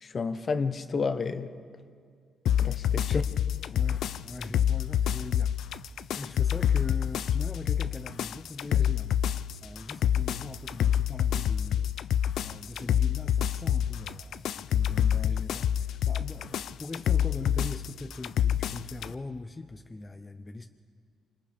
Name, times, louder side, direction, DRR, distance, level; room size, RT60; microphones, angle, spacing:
voice 1, 0.0-1.5 2.6-3.2, left 4 dB, 45° left, 1.0 m, -30 dB
sound 1, 2.5-19.1, left 9 dB, 75° left, 0.4 m, -27 dB
voice 2, 3.7-5.9 6.1-9.3 9.6-12.1 12.4-20.7, left 3 dB, 25° left, 0.7 m, -41 dB
28.5 x 25.5 x 3.5 m
cardioid pair, 90°, 0 cm